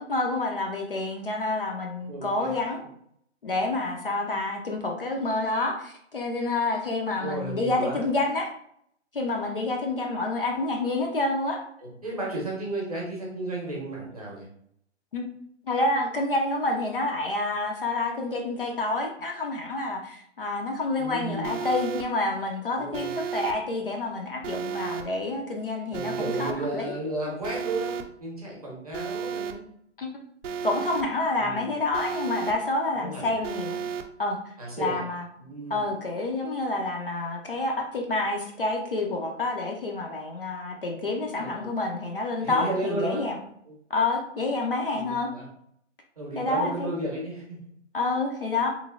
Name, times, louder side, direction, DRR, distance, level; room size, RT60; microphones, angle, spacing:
voice 1, 0.1-2.8 3.4-8.5 9.1-11.6 15.1-15.2 15.7-26.9 30.0-30.1 30.6-33.8 34.2-34.4 34.8-35.3 35.7-43.4 43.9-45.3 46.4-46.9 47.9-48.7, left 2 dB, 50° left, 2 dB, 0.4 m, -28 dB
voice 2, 2.1-2.6 7.2-8.0 11.8-14.5 21.0-21.8 22.8-23.1 25.9-27.9 28.2-29.7 31.4-31.7 33.0-33.3 34.6-35.0 35.4-35.8 41.4-41.7 42.4-43.3 43.6-43.8 44.9-45.5 46.2-47.6, right 2 dB, 30° right, -3 dB, 0.7 m, -33 dB
Alarm, 21.4-22.0 22.9-23.5 24.4-25.0 25.9-26.5 27.4-28.0 28.9-29.5 30.4-31.0 31.9-32.5 33.4-34.0, right 7 dB, 80° right, 0.5 m, -32 dB
3.0 x 2.5 x 2.4 m, 0.69 s
hypercardioid pair, 180°, 36 cm